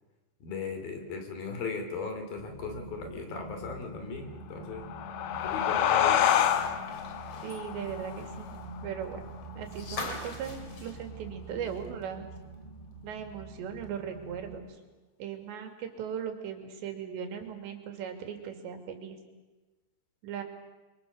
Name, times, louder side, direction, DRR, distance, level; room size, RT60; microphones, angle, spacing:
voice 1, 0.4-4.8 5.5-6.2 17.4-17.5, left 4 dB, 60° left, 5 dB, 4.6 m, -37 dB
sound 1, 2.4-14.6, right 2 dB, 60° right, 4.5 m, -45 dB
sound 2, 4.6-9.8, left 10 dB, 85° left, 3.4 m, -29 dB
sound 3, 6.0-12.0 12.4-12.5 13.8-13.9, left 3 dB, 35° left, 3.4 m, -44 dB
voice 2, 7.4-8.6 8.8-9.2 9.6-12.3 13.0-14.8 15.2-19.2 20.2-20.4, right 8 dB, 85° right, 5 dB, 4.7 m, -38 dB
29.5 x 23.5 x 6.7 m, 1.2 s
omnidirectional pair, 5.0 m